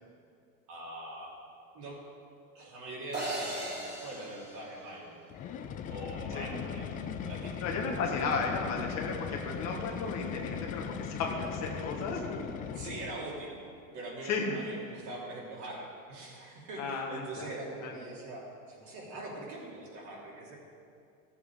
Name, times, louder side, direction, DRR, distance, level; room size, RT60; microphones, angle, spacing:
voice 1, 0.7-1.3 1.7-2.0 2.5-5.2 5.9-7.0 7.2-7.7 12.7-13.5 13.9-20.6, right 2 dB, 40° right, -4 dB, 3.3 m, -43 dB
sound 1, 3.1-5.5, right 1 dB, 25° right, 2.8 m, -38 dB
sound 2, 5.3-13.3, left 7 dB, 20° left, 0.4 m, -39 dB
voice 2, 7.6-12.4 14.2-14.6 16.8-17.5 17.8-17.9, left 4 dB, 40° left, 0 dB, 1.5 m, -34 dB
14.0 x 7.3 x 5.0 m, 2.4 s
supercardioid pair, 130°, 43 cm